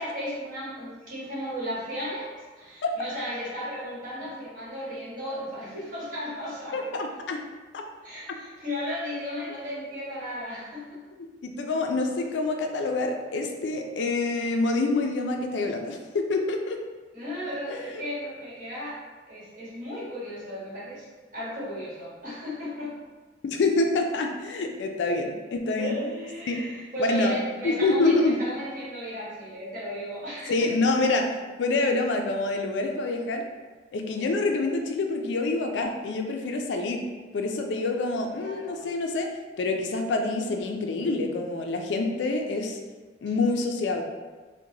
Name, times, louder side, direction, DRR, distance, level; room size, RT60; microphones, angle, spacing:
voice 1, 0.0-2.3 2.6-6.9 8.0-11.0 17.1-19.0 19.3-21.0 21.3-22.9 25.8-30.7 38.3-38.8, equal, 50° right, -9 dB, 1.5 m, -35 dB
voice 2, 6.7-7.4 7.7-7.8 11.4-16.8 17.7-18.0 23.4-26.0 26.5-26.6 27.0-27.4 27.6-28.3 30.5-31.3 31.6-33.5 33.9-37.0 37.3-39.3 39.6-42.8 43.2-44.0, left 3 dB, 85° left, 3 dB, 0.4 m, -26 dB
3.9 x 2.2 x 2.8 m, 1.3 s
head